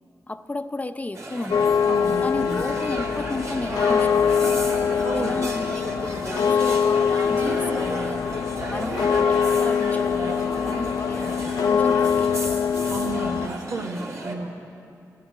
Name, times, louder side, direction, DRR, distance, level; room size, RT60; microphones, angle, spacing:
voice 1, 0.3-1.8 2.2-4.5 5.1-8.2 8.7-12.4, left 2 dB, 25° left, 9 dB, 0.6 m, -33 dB
sound 1, 1.1-14.3, right 2 dB, 50° right, 2.1 m, -33 dB
sound 2, 1.5-13.5, left 7 dB, 85° left, 0.5 m, -23 dB
voice 2, 1.9-2.6 5.0-5.3 12.9-14.5, right 3 dB, 85° right, 3 dB, 1.2 m, -32 dB
12.5 x 11.5 x 9.4 m, 2.5 s
cardioid pair, 60°, 6 cm